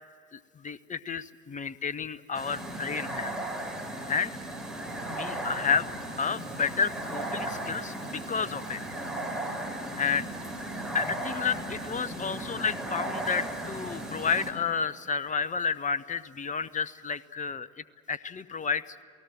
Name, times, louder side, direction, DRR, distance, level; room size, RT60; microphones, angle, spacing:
voice 1, 0.3-3.3 4.1-4.4 5.1-5.9 6.2-8.8 10.0-10.3 10.9-17.7 18.1-19.0, left 6 dB, 20° left, 15 dB, 0.9 m, -31 dB
sound 1, 2.3-14.5, right 1 dB, ahead, 5.5 m, -36 dB
28.5 x 18.0 x 7.5 m, 2.2 s
figure-of-eight pair, 55°, 34 cm